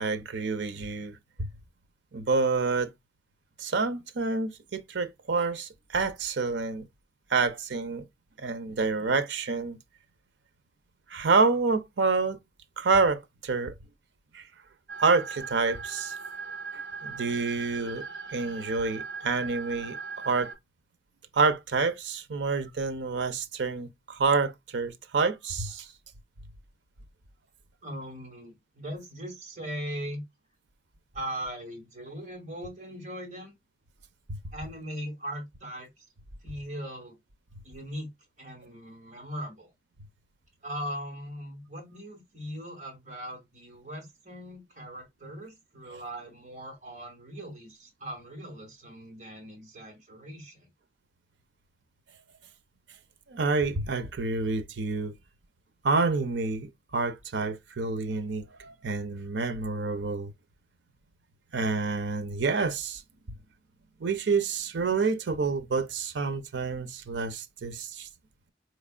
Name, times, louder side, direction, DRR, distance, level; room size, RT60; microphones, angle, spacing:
voice 1, 0.0-1.5 2.1-2.9 3.6-6.9 7.3-8.1 8.4-9.8 11.1-12.4 12.8-13.7 14.3-14.4 15.0-16.1 16.7-18.0 18.3-20.0 20.2-20.5 21.3-25.9 34.3-34.4 53.3-55.1 55.8-60.3 61.5-63.0 64.0-68.1, right 4 dB, 90° right, 0.6 m, -28 dB
sound 1, 14.9-20.5, right 4 dB, 70° right, 1.9 m, -39 dB
voice 2, 27.8-30.2 31.1-33.5 34.5-36.1 36.4-37.2 37.6-38.1 38.4-39.7 40.6-50.7, equal, 45° right, 2.2 m, -39 dB
4.3 x 3.2 x 2.4 m
head